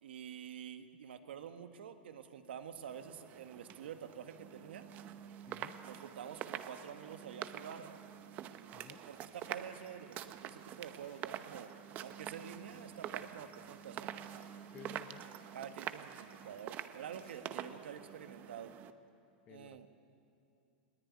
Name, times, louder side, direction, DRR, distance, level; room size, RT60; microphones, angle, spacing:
voice 1, 0.0-4.9 5.8-8.0 8.9-11.7 12.0-14.1 15.5-18.7 19.5-19.9, right 8 dB, 90° right, 8 dB, 1.6 m, -48 dB
sound 1, 2.9-18.9, right 10 dB, 30° right, 0.8 m, -47 dB
voice 2, 5.5-5.8 8.7-9.0 14.7-15.3 19.5-19.9, left 11 dB, 25° left, 16 dB, 0.5 m, -55 dB
sound 2, 9.3-10.0 11.0-11.7 12.6-13.1 14.3-14.8 15.8-16.3 17.2-17.8, left 7 dB, 60° left, 3.8 m, -71 dB
20.5 x 18.5 x 9.7 m, 2.6 s
supercardioid pair, 160°, 6 cm